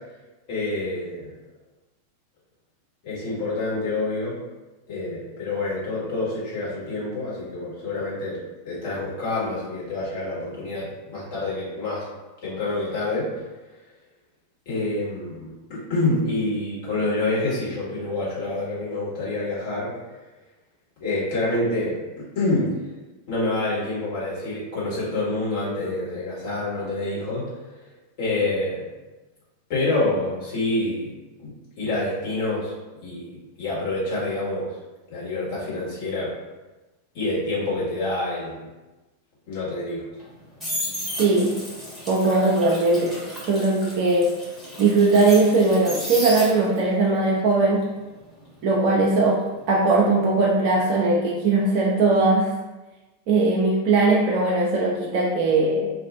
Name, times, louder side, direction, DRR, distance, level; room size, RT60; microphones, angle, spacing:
voice 1, 0.5-1.3 3.0-4.3 4.9-12.0 12.4-13.3 14.6-19.9 21.0-22.8 23.3-27.5 28.2-28.8 29.7-31.1 31.4-32.7 33.0-34.7 35.1-36.3 37.1-38.7 39.5-40.0, left 2 dB, 45° left, -7 dB, 1.4 m, -27 dB
sound 1, 40.2-46.9 47.3-50.2 50.4-50.8, equal, 5° left, 1.2 m, -34 dB
voice 2, 41.2-41.5 42.1-43.2 43.5-44.3 44.8-47.9 48.6-49.4 49.7-52.5 53.3-55.9, right 3 dB, 45° right, -3 dB, 0.5 m, -19 dB
2.5 x 2.4 x 3.5 m, 1.1 s
figure-of-eight pair, 90°, 0 cm